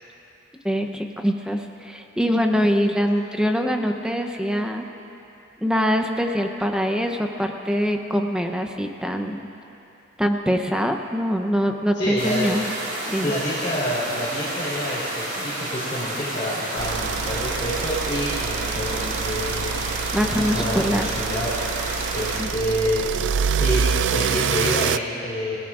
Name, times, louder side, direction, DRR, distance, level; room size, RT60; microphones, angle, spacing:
voice 1, 0.6-4.8 5.6-9.5 10.2-12.7 13.1-13.3 20.1-21.1 22.4-22.5, equal, 5° right, 4 dB, 0.7 m, -23 dB
voice 2, 11.9-12.5 13.2-19.9 20.2-21.5 22.1-23.1 23.6-25.6, equal, 30° left, -11 dB, 3.8 m, -27 dB
sound 1, 12.2-22.4, right 1 dB, 45° right, 3.8 m, -30 dB
sound 2, 16.8-25.0, right 6 dB, 65° right, 0.4 m, -26 dB
29.5 x 16.5 x 2.5 m, 2.9 s
head